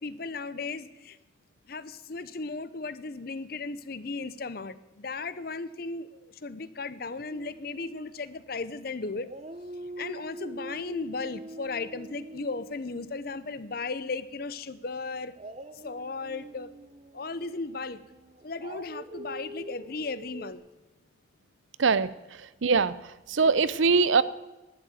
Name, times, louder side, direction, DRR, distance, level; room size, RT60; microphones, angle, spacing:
voice 1, 0.0-1.2 1.7-6.1 6.4-9.3 10.0-15.3 15.8-16.7 17.1-18.0 18.4-20.6, left 3 dB, 50° left, 15 dB, 0.7 m, -36 dB
Dog, 7.3-8.8 9.2-14.3 15.3-20.5, right 1 dB, 35° right, 0.8 m, -45 dB
voice 2, 21.8-22.1 22.6-22.9 23.3-24.2, right 4 dB, 80° right, 16 dB, 0.6 m, -22 dB
11.5 x 9.3 x 9.1 m, 1.1 s
head